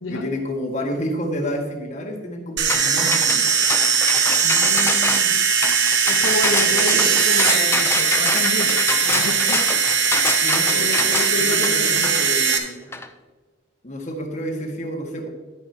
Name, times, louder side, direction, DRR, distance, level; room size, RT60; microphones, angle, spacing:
voice 1, 0.1-3.6 6.1-6.2 6.6-7.1 10.4-10.9 11.3-12.9 13.8-15.3, equal, 40° left, 2 dB, 1.7 m, -30 dB
sound 1, 2.6-12.6, right 6 dB, 65° right, 1.2 m, -19 dB
sound 2, 2.7-13.1, left 3 dB, 15° left, 0.6 m, -26 dB
voice 2, 4.4-5.5 6.1-9.7 10.7-12.1, left 1 dB, 85° left, 2 dB, 1.1 m, -29 dB
11.5 x 9.3 x 2.9 m, 1.3 s
head